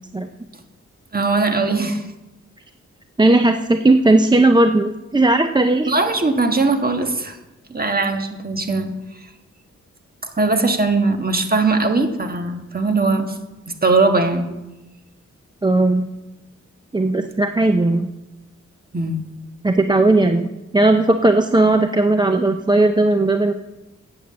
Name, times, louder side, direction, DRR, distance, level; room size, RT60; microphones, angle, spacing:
voice 1, 1.1-2.1 5.8-7.4 7.7-8.9 10.3-13.4 13.7-14.5 18.9-19.3, right 3 dB, 30° right, 5 dB, 1.4 m, -20 dB
voice 2, 3.2-5.9 15.6-16.1 16.9-18.1 19.6-23.5, right 2 dB, 15° right, 7 dB, 0.5 m, -16 dB
8.9 x 8.1 x 7.5 m, 1.0 s
wide cardioid pair, 85°, 30 cm